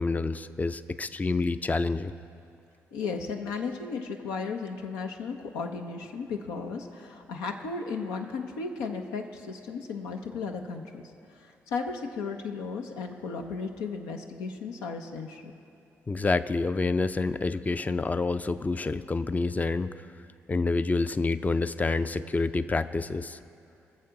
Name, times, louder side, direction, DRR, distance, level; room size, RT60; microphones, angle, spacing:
voice 1, 0.0-2.1 16.1-19.9 20.5-23.4, left 3 dB, 25° left, 13 dB, 0.5 m, -28 dB
voice 2, 2.9-11.0 11.7-15.4, left 4 dB, 85° left, 3 dB, 0.7 m, -35 dB
21.5 x 7.2 x 3.8 m, 2.5 s
supercardioid pair, 50°, 6 cm